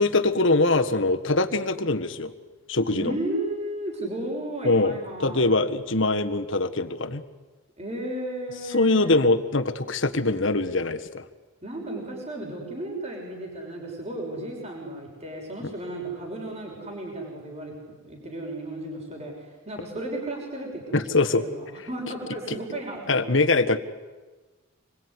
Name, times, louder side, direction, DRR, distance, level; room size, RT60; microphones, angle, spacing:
voice 1, 0.0-2.3 2.7-3.1 4.6-7.2 8.7-11.2 20.9-21.4 23.1-23.8, left 2 dB, 60° left, 9 dB, 1.6 m, -23 dB
voice 2, 2.9-5.6 7.8-9.2 11.6-19.3 19.6-23.5, right 1 dB, 30° right, 0 dB, 6.2 m, -34 dB
27.5 x 22.0 x 9.9 m, 1.3 s
head